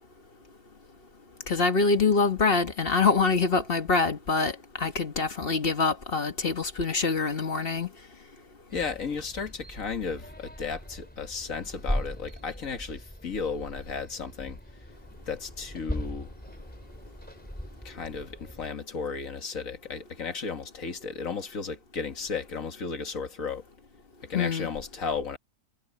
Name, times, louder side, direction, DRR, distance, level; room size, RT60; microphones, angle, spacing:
voice 1, 1.5-7.9 24.3-24.7, left 4 dB, 40° left, 1.5 m, -25 dB
voice 2, 8.7-14.6 15.3-16.3 17.8-23.6 24.2-25.4, left 5 dB, 60° left, 2.1 m, -34 dB
sound 1, 8.7-18.7, equal, 5° left, 3.8 m, -39 dB
omnidirectional pair, 1.6 m